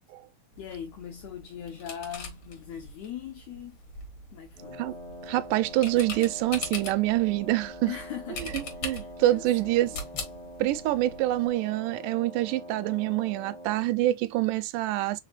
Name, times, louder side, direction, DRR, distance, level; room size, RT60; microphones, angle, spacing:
sound 1, 0.5-11.5, left 3 dB, 55° left, 1.7 m, -42 dB
voice 1, 0.6-3.8 4.3-4.8 7.9-10.0, left 9 dB, 80° left, 1.5 m, -41 dB
Wind instrument woodwind instrument, 4.5-13.9, equal, 5° left, 0.5 m, -44 dB
voice 2, 5.2-7.9 8.4-9.9 10.6-15.2, right 16 dB, 85° right, 2.1 m, -26 dB
4.8 x 3.3 x 2.3 m
omnidirectional pair, 3.6 m